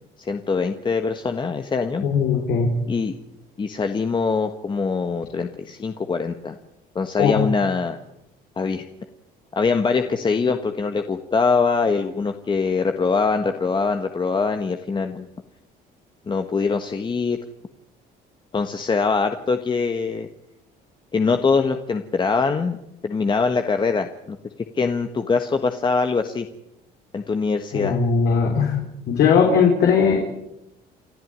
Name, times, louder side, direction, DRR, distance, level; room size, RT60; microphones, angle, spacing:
voice 1, 0.2-2.0 2.9-3.1 3.6-6.6 6.9-8.0 8.6-8.8 9.5-15.3 16.3-17.4 18.5-20.3 21.1-22.8 23.0-24.4 24.7-26.5 27.1-27.9, left 4 dB, 25° left, 6 dB, 1.4 m, -23 dB
voice 2, 2.0-2.7 7.2-7.4 27.7-28.8 29.1-30.2, left 6 dB, 75° left, 0 dB, 4.2 m, -18 dB
29.5 x 12.5 x 9.6 m, 0.87 s
cardioid pair, 110°, 17 cm